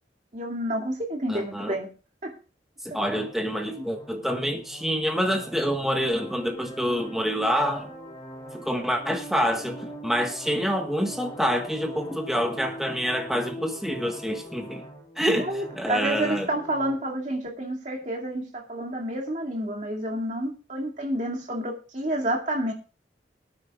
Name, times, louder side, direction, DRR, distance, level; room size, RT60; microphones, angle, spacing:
voice 1, 0.3-1.9 2.2-2.4 15.4-22.7, right 1 dB, 45° right, -1 dB, 2.4 m, -29 dB
voice 2, 1.3-1.8 2.8-7.9 8.5-14.8 15.2-15.5 15.8-16.5, equal, ahead, 3 dB, 1.4 m, -27 dB
sound 1, 3.0-16.9, equal, 20° left, 3.8 m, -42 dB
23.0 x 9.4 x 2.4 m, 0.34 s
head